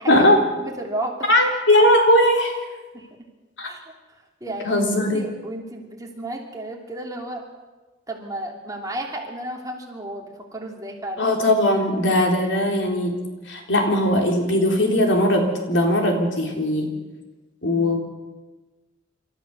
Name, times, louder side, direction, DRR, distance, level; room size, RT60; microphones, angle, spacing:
voice 1, 0.1-0.4 1.3-2.5 3.6-3.7 4.6-5.2 11.2-16.9 17.6-18.0, left 1 dB, 85° left, 2 dB, 3.7 m, -19 dB
voice 2, 0.6-1.3 2.9-3.1 3.6-3.8 4.1-4.8 5.1-7.4 8.1-11.4, right 1 dB, 20° right, 0 dB, 3.0 m, -33 dB
27.5 x 13.5 x 6.9 m, 1.2 s
head